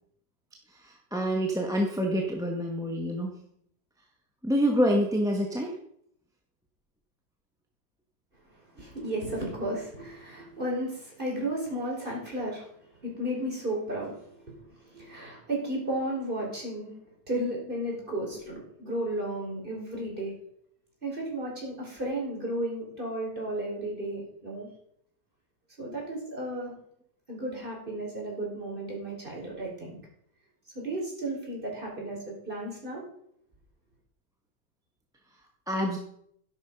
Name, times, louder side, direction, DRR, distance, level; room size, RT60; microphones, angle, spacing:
voice 1, 0.7-3.4 4.4-5.7 35.7-36.0, equal, ahead, 0 dB, 1.5 m, -27 dB
voice 2, 8.8-12.7 13.0-14.5 14.8-20.3 21.0-24.7 25.8-26.7 27.3-30.0 30.8-32.2 32.5-33.0, right 1 dB, 25° right, -2 dB, 5.2 m, -33 dB
13.0 x 11.0 x 5.5 m, 0.70 s
omnidirectional pair, 1.9 m